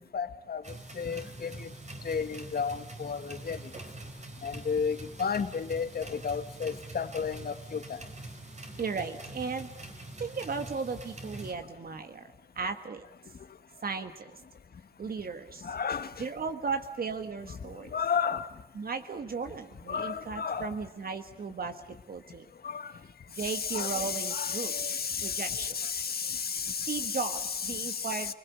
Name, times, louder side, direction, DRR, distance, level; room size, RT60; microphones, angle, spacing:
voice 1, 0.0-1.7 2.0-3.6 4.4-8.0 15.6-16.2 17.5-17.6 17.9-18.5 19.9-20.7 22.6-22.9 23.4-28.3, left 6 dB, 90° left, 10 dB, 1.7 m, -33 dB
sound 1, 0.6-11.5, right 2 dB, 50° right, 4.3 m, -44 dB
voice 2, 8.8-9.7 10.2-12.3 12.6-13.0 13.8-14.3 15.0-15.7 16.2-17.9 18.8-21.8 22.1-22.4 23.4-24.7 25.2-25.7 26.9-28.3, right 5 dB, 75° right, 8 dB, 1.6 m, -35 dB
29.5 x 21.5 x 8.2 m, 0.95 s
wide cardioid pair, 100°, 15 cm